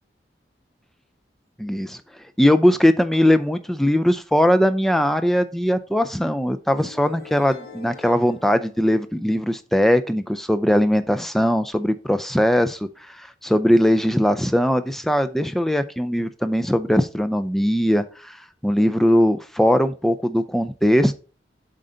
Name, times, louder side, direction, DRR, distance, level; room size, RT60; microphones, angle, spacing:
voice 1, 1.6-2.0 2.4-18.4 18.6-21.1, equal, ahead, 9 dB, 0.4 m, -20 dB
sound 1, 6.7-9.6, left 4 dB, 55° left, 1.2 m, -44 dB
7.7 x 3.8 x 3.8 m, 0.36 s
head